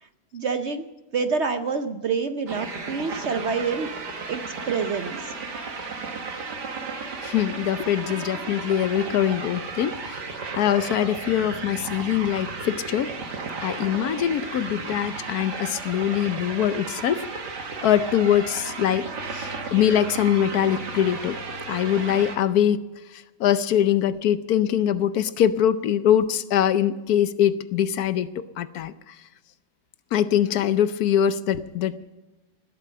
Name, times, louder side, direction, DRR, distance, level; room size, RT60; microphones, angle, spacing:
voice 1, 0.3-0.8 1.1-3.9 4.3-5.3, right 5 dB, 55° right, 9 dB, 0.8 m, -27 dB
sound 1, 2.5-22.4, right 4 dB, 80° right, 2.3 m, -34 dB
voice 2, 7.2-10.2 10.6-13.1 13.6-17.3 17.8-19.1 19.3-21.4 21.7-22.8 23.1-29.2 30.1-32.2, left 10 dB, 70° left, 14 dB, 1.1 m, -23 dB
19.0 x 8.4 x 7.6 m, 1.1 s
omnidirectional pair, 1.8 m